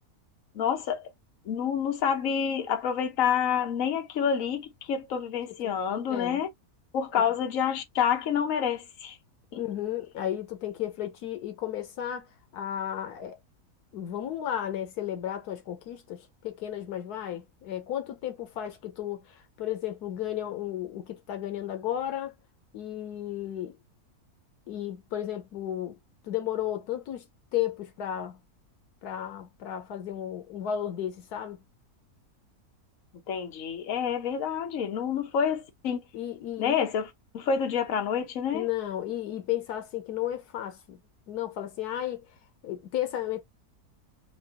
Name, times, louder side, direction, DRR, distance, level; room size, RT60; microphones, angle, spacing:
voice 1, 0.5-1.1 1.5-6.5 6.9-9.2 9.5-9.6 33.3-36.0 36.6-37.1 37.3-38.7, left 7 dB, 60° left, 1.3 m, -28 dB
voice 2, 6.1-6.4 9.6-12.3 12.5-13.4 13.9-22.3 22.7-23.8 24.7-26.0 26.2-27.2 27.5-28.4 29.0-31.6 36.1-36.9 38.5-41.0 41.3-42.2 42.6-43.4, left 11 dB, 80° left, 1.3 m, -33 dB
4.9 x 2.3 x 2.9 m
omnidirectional pair, 1.6 m